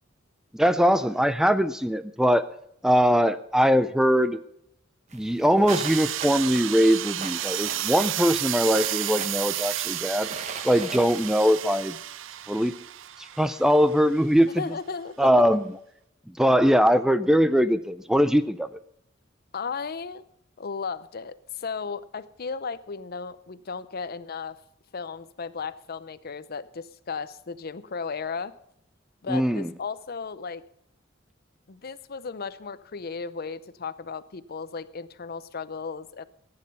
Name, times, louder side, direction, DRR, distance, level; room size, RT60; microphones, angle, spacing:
voice 1, 0.5-2.4 2.8-4.4 5.1-10.3 10.6-12.0 12.5-12.7 13.4-14.5 15.2-15.6 16.4-18.7 29.3-29.7, equal, 5° right, 13 dB, 0.4 m, -21 dB
sound 1, 5.1-11.4, right 4 dB, 35° right, 1.1 m, -41 dB
sound 2, 5.7-14.3, right 14 dB, 75° right, 0.5 m, -32 dB
voice 2, 14.6-15.4 19.5-20.2 20.6-24.6 24.9-28.5 29.2-30.6 31.7-36.3, left 5 dB, 50° left, 15 dB, 0.6 m, -35 dB
16.0 x 9.7 x 5.4 m, 0.75 s
head